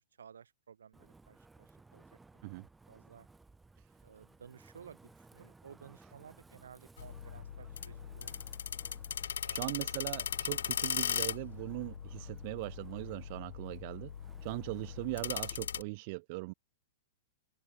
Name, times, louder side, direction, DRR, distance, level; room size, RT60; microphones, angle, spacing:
voice 1, 0.2-2.0 2.3-2.5 2.9-3.3 4.0-8.5 9.4-9.8 14.7-15.1, right 7 dB, 70° right, 2.5 m, -56 dB
Wind, 0.9-15.7, right 3 dB, 10° right, 7.6 m, -60 dB
sound 1, 7.0-15.8, left 8 dB, 70° left, 0.3 m, -39 dB
voice 2, 9.2-14.1 14.4-16.5, right 26 dB, 45° right, 0.9 m, -40 dB
open air
figure-of-eight pair, 105°, 0 cm